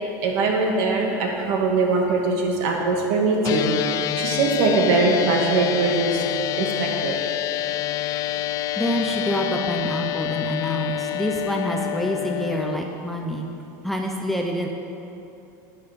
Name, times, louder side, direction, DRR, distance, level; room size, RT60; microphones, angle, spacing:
voice 1, 0.2-6.2 6.5-7.2 13.1-13.2, right 3 dB, 55° right, 0 dB, 2.1 m, -22 dB
sound 1, 3.4-12.8, left 13 dB, 35° left, 0.3 m, -27 dB
voice 2, 8.1-8.4 8.8-13.5 13.8-14.7, equal, ahead, 1 dB, 0.7 m, -27 dB
11.5 x 9.3 x 5.2 m, 2.9 s
supercardioid pair, 145°, 10 cm